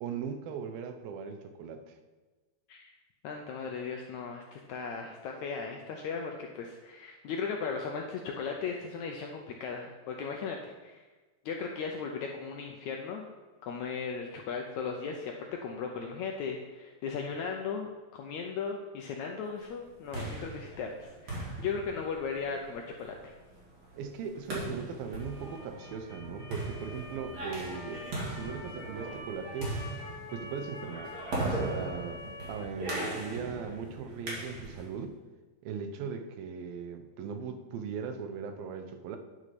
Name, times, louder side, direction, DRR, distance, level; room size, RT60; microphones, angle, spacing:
voice 1, 0.0-2.0 24.0-29.8 30.3-31.1 31.4-35.2 35.6-39.2, right 6 dB, 85° right, 7 dB, 2.7 m, -39 dB
voice 2, 3.2-11.1 11.4-13.2 13.6-23.3, left 5 dB, 80° left, 2 dB, 1.7 m, -37 dB
sound 1, 19.8-35.0, right 2 dB, 50° right, 3.6 m, -39 dB
Motor vehicle (road) / Siren, 25.1-32.6, left 2 dB, 40° left, 3.0 m, -47 dB
9.5 x 6.3 x 5.9 m, 1.2 s
omnidirectional pair, 4.1 m